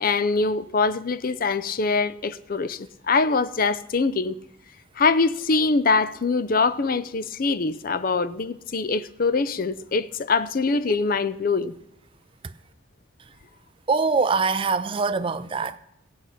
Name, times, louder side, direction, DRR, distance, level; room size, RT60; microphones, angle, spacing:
voice 1, 0.0-4.4 5.0-11.7, left 4 dB, 45° left, 0.5 m, -23 dB
voice 2, 13.9-15.8, right 4 dB, 25° right, 0.4 m, -23 dB
15.5 x 5.8 x 8.3 m
head